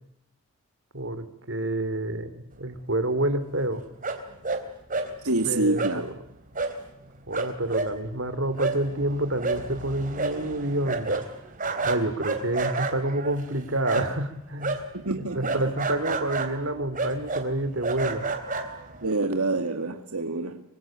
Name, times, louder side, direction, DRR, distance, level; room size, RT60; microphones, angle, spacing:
voice 1, 0.9-3.8 5.5-6.1 7.3-11.2 11.8-14.8 15.3-18.2, right 1 dB, 60° right, 2.9 m, -28 dB
sound 1, 4.0-4.6 4.9-5.1 5.8-5.9 6.5-6.8 7.0-7.1 7.3-14.3 14.6-19.1, right 3 dB, 35° right, 3.6 m, -30 dB
voice 2, 5.2-6.0 14.9-15.7 19.0-20.6, right 2 dB, 80° right, 2.2 m, -27 dB
25.5 x 25.0 x 8.9 m
head